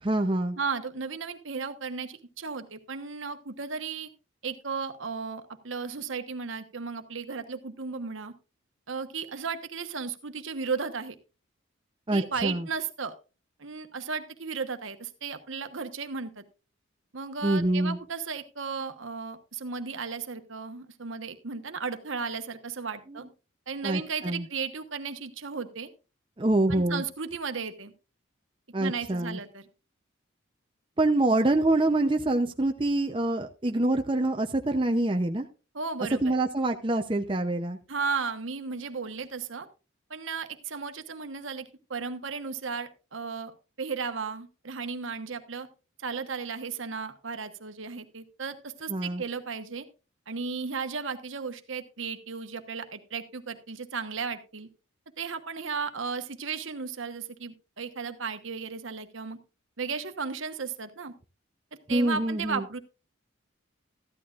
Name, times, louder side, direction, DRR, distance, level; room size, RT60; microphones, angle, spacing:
voice 1, 0.0-0.6 12.1-12.7 17.4-18.0 23.1-23.2 23.8-24.5 26.4-27.0 28.7-29.4 31.0-35.5 36.2-37.8 48.9-49.2 61.9-62.6, right 2 dB, 25° right, 4 dB, 0.6 m, -26 dB
voice 2, 0.6-4.1 4.4-8.3 8.9-11.2 12.1-13.1 13.6-16.4 17.1-23.3 23.7-25.9 26.7-27.9 28.8-29.7 35.7-36.3 37.9-39.7 40.1-43.5 43.8-45.7 46.0-49.8 50.3-54.7 55.2-59.4 59.8-61.1 61.9-62.8, right 5 dB, 75° right, 8 dB, 1.2 m, -35 dB
14.5 x 11.0 x 2.4 m, 0.31 s
head